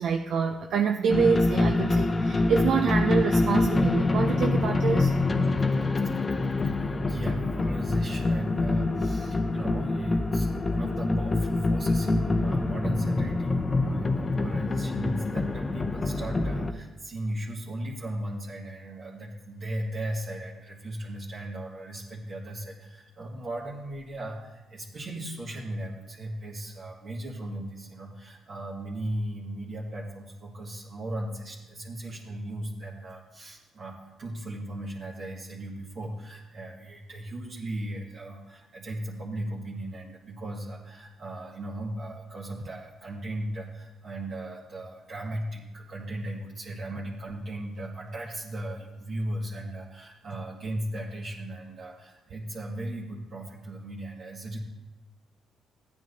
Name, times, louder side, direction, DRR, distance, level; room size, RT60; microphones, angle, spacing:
voice 1, 0.0-5.1, right 6 dB, 70° right, 4 dB, 0.5 m, -26 dB
sound 1, 1.1-16.7, left 2 dB, 25° left, 0.7 m, -25 dB
voice 2, 5.4-6.2 6.6-54.6, right 1 dB, 55° right, -5 dB, 1.9 m, -37 dB
14.5 x 9.4 x 2.8 m, 1.1 s
cardioid pair, 90°, 0 cm